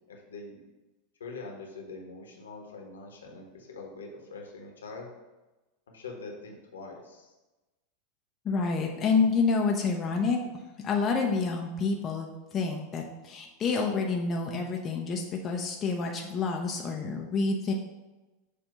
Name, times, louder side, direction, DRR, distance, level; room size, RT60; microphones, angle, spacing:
voice 1, 0.1-0.6 1.2-5.1 5.9-7.3, left 3 dB, 75° left, 1 dB, 1.2 m, -43 dB
voice 2, 8.4-10.4 10.8-12.3 12.5-17.7, left 4 dB, 30° left, 1 dB, 0.7 m, -28 dB
6.9 x 2.7 x 5.4 m, 1.1 s
figure-of-eight pair, 85°, 0 cm